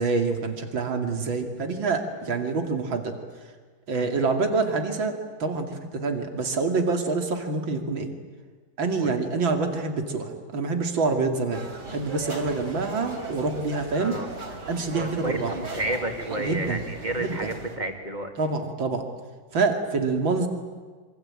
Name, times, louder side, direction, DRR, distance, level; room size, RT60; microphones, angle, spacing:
voice 1, 0.0-3.1 3.9-8.1 8.8-11.6 11.9-14.1 14.7-15.5 16.3-16.8 17.2-17.5 18.4-19.0 19.5-20.5, right 4 dB, 90° right, 5 dB, 3.2 m, -26 dB
voice 2, 3.9-4.3 9.0-9.2 13.9-14.3 14.9-18.3, right 2 dB, 20° right, 4 dB, 3.0 m, -31 dB
sound 1, 11.5-17.8, right 2 dB, 60° right, 4.4 m, -38 dB
26.5 x 24.5 x 8.9 m, 1.5 s
omnidirectional pair, 2.1 m